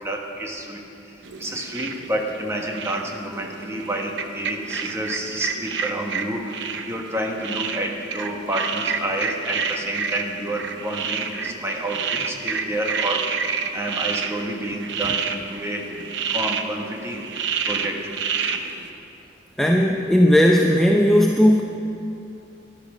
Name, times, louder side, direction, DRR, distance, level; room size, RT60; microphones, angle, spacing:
voice 1, 0.0-16.0 16.3-17.3 17.7-18.1, right 1 dB, 15° right, 1 dB, 1.3 m, -29 dB
sound 1, 1.2-18.9, right 6 dB, 70° right, 0.8 m, -29 dB
voice 2, 19.6-21.6, equal, ahead, 0 dB, 0.6 m, -16 dB
13.5 x 11.5 x 6.1 m, 2.8 s
head